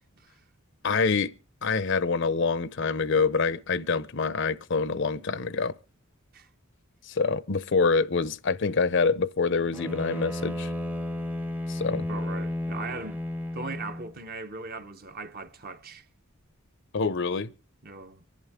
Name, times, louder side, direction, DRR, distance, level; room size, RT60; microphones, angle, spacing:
voice 1, 0.8-1.3 1.6-5.8 7.0-10.7 11.7-12.1 16.9-17.5, left 4 dB, 60° left, 0.6 m, -26 dB
Bowed string instrument, 9.7-14.2, left 1 dB, 10° right, 0.7 m, -33 dB
voice 2, 12.1-13.2 13.5-16.1 17.8-18.2, right 3 dB, 45° right, 0.9 m, -39 dB
24.5 x 11.0 x 3.5 m
head